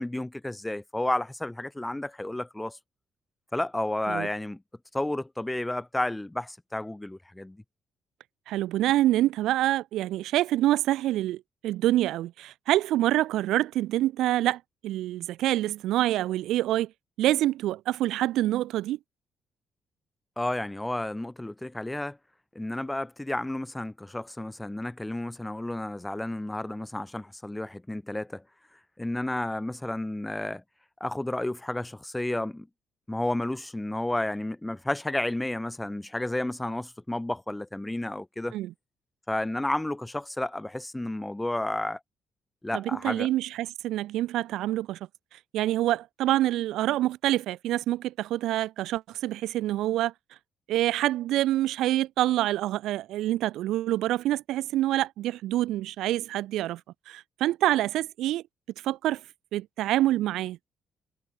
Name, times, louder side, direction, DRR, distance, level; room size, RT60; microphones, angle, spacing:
voice 1, 0.0-2.8 3.5-4.6 4.9-7.6 20.4-22.2 22.5-28.4 29.0-30.6 31.0-32.7 33.1-38.6 39.3-42.0 42.6-43.3, left 1 dB, 10° left, 0.8 m, -31 dB
voice 2, 8.5-16.9 17.2-19.0 38.5-38.7 42.7-45.0 45.5-50.1 50.7-56.8 57.1-58.4 58.8-59.2 59.5-60.6, right 14 dB, 85° right, 0.6 m, -26 dB
cardioid pair, 90°, 0 cm